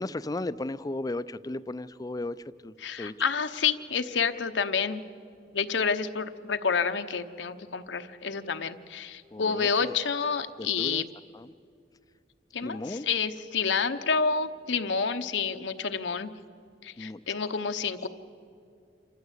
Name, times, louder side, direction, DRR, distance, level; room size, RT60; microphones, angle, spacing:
voice 1, 0.0-3.1 9.3-9.9 10.6-11.0 11.3-11.5 12.6-13.1 17.0-17.4, left 2 dB, 20° left, 16 dB, 0.4 m, -35 dB
voice 2, 2.8-5.0 5.5-11.0 12.5-16.3 16.8-18.1, left 5 dB, 90° left, 8 dB, 0.9 m, -29 dB
27.0 x 14.5 x 8.2 m, 2.5 s
head